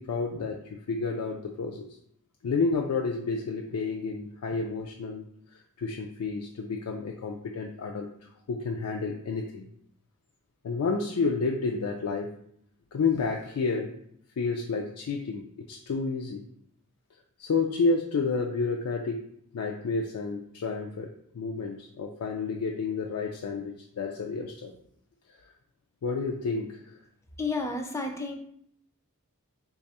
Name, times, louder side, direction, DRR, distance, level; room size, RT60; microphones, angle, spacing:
voice 1, 0.0-2.0 2.4-5.3 5.5-8.1 8.5-9.7 10.6-12.4 12.9-14.0 14.4-16.4 17.4-24.7 26.0-26.8, left 4 dB, 90° left, 1 dB, 0.4 m, -30 dB
voice 2, 27.4-28.3, left 3 dB, 15° left, 4 dB, 0.3 m, -31 dB
3.2 x 2.3 x 4.1 m, 0.68 s
head